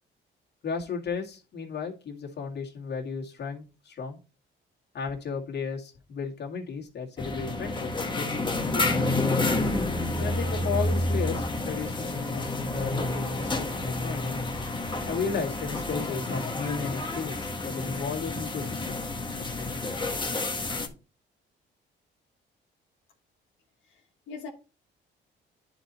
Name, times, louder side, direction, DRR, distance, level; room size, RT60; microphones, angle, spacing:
voice 1, 0.6-4.2 4.9-9.1 10.2-14.4 15.1-19.0 19.6-20.0, left 5 dB, 55° left, 2.1 m, -34 dB
sound 1, 7.2-20.9, left 2 dB, 25° left, 1.5 m, -29 dB
voice 2, 23.8-24.5, left 5 dB, 85° left, 1.3 m, -42 dB
10.0 x 4.1 x 4.3 m
cardioid pair, 90°, 20 cm